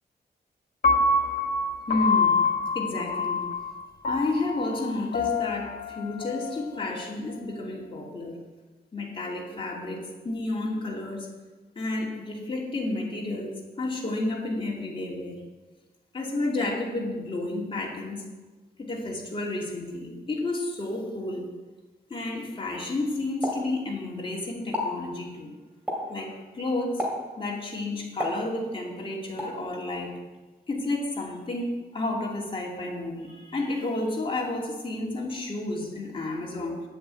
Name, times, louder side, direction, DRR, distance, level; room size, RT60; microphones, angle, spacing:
Piano, 0.8-7.0, left 3 dB, 55° left, 1.6 m, -26 dB
voice 1, 1.9-2.4 2.7-3.4 4.1-8.4 8.9-11.3 11.7-15.4 16.1-18.3 18.8-21.5 22.1-25.5 26.1-27.0 27.4-30.1 30.7-36.8, left 2 dB, 30° left, -2 dB, 2.7 m, -31 dB
Explosion, 23.4-24.3 24.6-25.0 25.9-26.2 27.0-27.4 28.2-28.9 29.4-29.6, left 1 dB, 10° right, 2.6 m, -32 dB
9.4 x 7.7 x 8.3 m, 1.2 s
wide cardioid pair, 150°, 17 cm